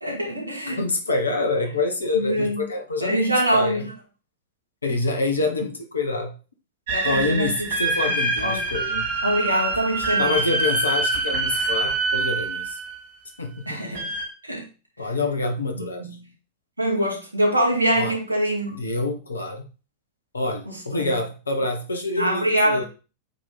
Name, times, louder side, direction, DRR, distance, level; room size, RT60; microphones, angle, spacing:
voice 1, 0.0-0.8 2.1-2.6 3.0-3.9 6.9-7.7 8.1-8.6 9.2-10.4 13.7-14.1 14.5-14.6 15.7-16.2 16.8-18.8 20.7-21.2 22.2-22.8, right 1 dB, 80° right, -2 dB, 2.3 m, -24 dB
voice 2, 0.7-3.8 4.8-6.4 7.0-9.1 10.2-12.8 13.4-13.8 15.0-16.0 17.9-18.2 18.7-19.7 20.3-22.8, left 3 dB, 75° left, 5 dB, 1.1 m, -26 dB
sound 1, 6.9-12.9 13.9-14.2, right 3 dB, 65° right, 2.9 m, -25 dB
8.1 x 3.1 x 3.9 m, 0.33 s
figure-of-eight pair, 90°, 0 cm